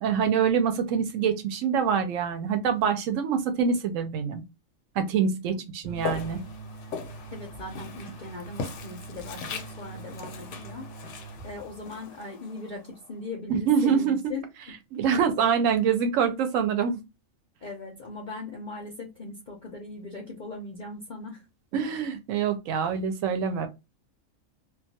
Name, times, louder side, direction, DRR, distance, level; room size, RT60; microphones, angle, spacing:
voice 1, 0.0-4.4 5.0-6.4 13.5-14.2 14.9-17.0 21.7-23.7, right 7 dB, 75° right, 1.0 m, -25 dB
sound 1, 5.8-12.0, right 4 dB, 30° right, 0.5 m, -43 dB
Walk footsteps, 6.0-13.1, left 5 dB, 75° left, 0.9 m, -39 dB
voice 2, 7.3-10.9 11.4-14.4 15.0-15.2 17.6-21.4 21.8-22.0, left 3 dB, 50° left, 0.6 m, -39 dB
2.4 x 2.3 x 2.7 m
omnidirectional pair, 1.4 m